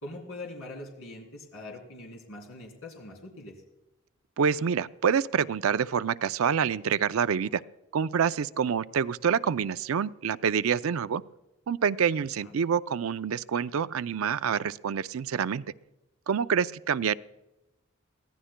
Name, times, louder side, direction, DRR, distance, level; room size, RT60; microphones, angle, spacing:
voice 1, 0.0-3.6 12.4-12.6, left 2 dB, 85° left, 0 dB, 3.0 m, -42 dB
voice 2, 4.4-7.6 7.9-11.2 11.7-15.6 16.3-17.1, right 7 dB, 85° right, 14 dB, 0.4 m, -27 dB
22.5 x 15.5 x 2.2 m, 0.95 s
head